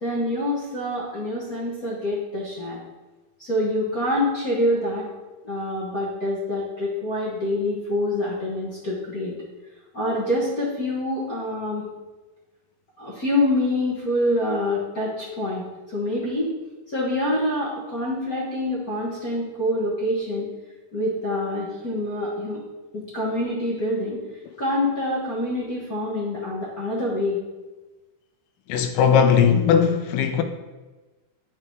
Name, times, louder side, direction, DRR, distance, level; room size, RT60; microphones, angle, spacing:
voice 1, 0.0-2.8 3.4-5.1 5.4-9.3 9.9-11.8 13.0-16.5 16.9-20.5 20.9-22.6 22.9-24.2 24.6-27.4, left 1 dB, 45° left, 1.1 m, -26 dB
voice 2, 28.7-30.4, left 7 dB, 90° left, 2.3 m, -18 dB
8.8 x 5.7 x 4.7 m
omnidirectional pair, 3.9 m